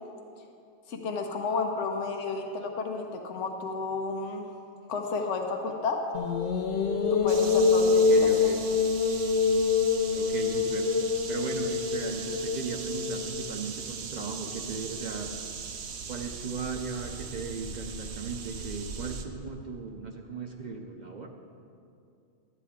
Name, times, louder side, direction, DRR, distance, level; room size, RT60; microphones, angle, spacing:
voice 1, 0.9-4.5 4.9-6.1 7.1-8.5, left 4 dB, 85° left, 3 dB, 1.1 m, -32 dB
sound 1, 6.1-13.5, left 4 dB, 65° left, 0.8 m, -25 dB
sound 2, 7.3-19.3, right 6 dB, 70° right, 0.9 m, -39 dB
voice 2, 7.9-8.6 10.1-10.9 11.3-15.3 16.1-21.3, right 4 dB, 50° right, 3 dB, 0.6 m, -37 dB
12.5 x 9.2 x 3.6 m, 2.5 s
omnidirectional pair, 1.2 m